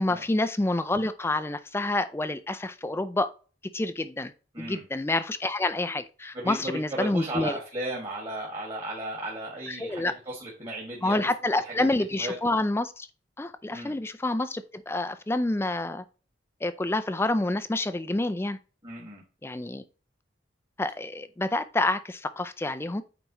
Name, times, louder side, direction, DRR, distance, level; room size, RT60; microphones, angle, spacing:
voice 1, 0.0-3.3 3.7-4.3 4.6-7.6 9.7-10.1 11.0-13.1 13.4-16.0 16.6-18.6 19.4-19.8 20.8-23.0, left 2 dB, 15° left, 0.4 m, -28 dB
voice 2, 6.3-11.2 11.6-11.8 12.1-12.4 13.7-13.9 18.8-19.2, right 1 dB, 30° right, 1.9 m, -35 dB
9.0 x 4.6 x 3.0 m
head